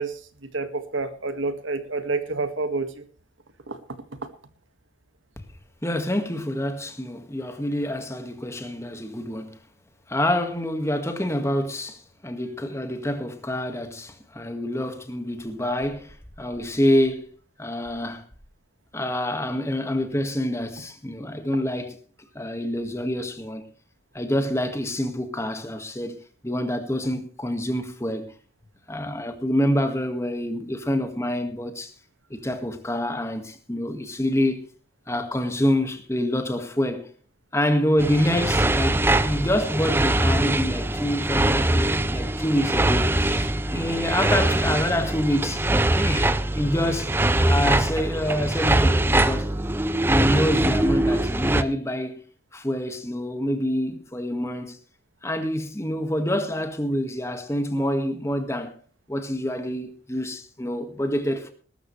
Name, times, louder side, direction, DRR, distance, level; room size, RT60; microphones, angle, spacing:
voice 1, 0.0-3.1 3.7-3.8, right 3 dB, 80° right, 1.9 m, -29 dB
voice 2, 5.8-9.6 10.1-17.3 17.6-18.3 18.9-22.0 22.4-23.7 24.1-26.2 26.4-28.3 28.9-31.9 32.3-34.7 35.1-37.1 37.5-45.7 46.0-47.1 47.4-49.5 50.1-52.2 52.5-54.8 55.2-58.7 59.1-61.5, left 1 dB, 15° left, 1.7 m, -26 dB
sound 1, 38.0-51.6, right 1 dB, 10° right, 0.6 m, -22 dB
19.5 x 13.0 x 3.3 m
head